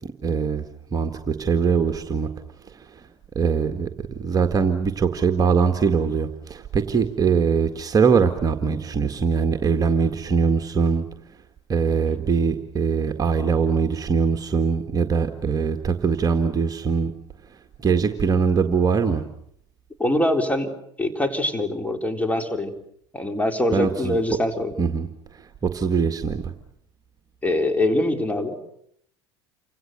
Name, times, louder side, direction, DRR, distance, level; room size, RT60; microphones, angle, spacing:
voice 1, 0.0-0.6 0.9-2.3 3.4-3.9 4.2-11.1 11.7-17.1 17.8-19.2 23.7-24.2 24.8-25.1 25.6-26.4, right 5 dB, 25° right, 6 dB, 1.9 m, -22 dB
voice 2, 20.0-20.7 21.0-22.7 23.1-24.7 27.4-28.6, left 1 dB, 10° left, 5 dB, 4.1 m, -23 dB
29.0 x 26.0 x 6.8 m, 0.71 s
figure-of-eight pair, 70°, 15 cm